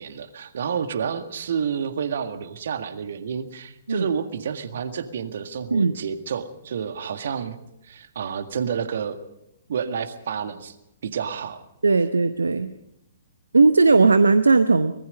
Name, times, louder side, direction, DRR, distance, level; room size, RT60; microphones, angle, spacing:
voice 1, 0.0-7.6 7.8-9.2 9.7-10.8 11.0-11.6, right 7 dB, 55° right, 9 dB, 1.8 m, -29 dB
voice 2, 11.8-12.7 13.5-14.9, right 3 dB, 75° right, 11 dB, 0.9 m, -17 dB
24.5 x 20.5 x 5.3 m, 0.83 s
figure-of-eight pair, 120°, 0 cm